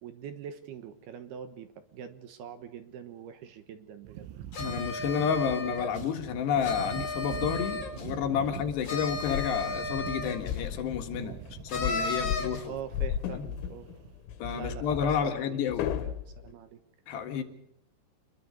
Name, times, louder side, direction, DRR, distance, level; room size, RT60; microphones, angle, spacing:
voice 1, 0.0-4.3 8.4-8.6 11.2-11.6 12.6-13.9 14.5-14.9 15.2-15.6 16.0-16.8, right 8 dB, 70° right, 9 dB, 2.9 m, -44 dB
sound 1, 4.0-14.2, right 11 dB, 90° right, 3.6 m, -44 dB
sound 2, 4.5-6.0 6.6-8.1 8.8-10.6 11.7-12.7, left 3 dB, 35° left, 4.6 m, -35 dB
voice 2, 4.6-12.7 13.3-13.4 14.4-15.9 17.1-17.4, left 7 dB, 70° left, 5 dB, 3.7 m, -30 dB
sound 3, 6.5-16.5, left 10 dB, 90° left, 3.5 m, -37 dB
27.0 x 22.0 x 5.4 m, 0.71 s
omnidirectional pair, 5.3 m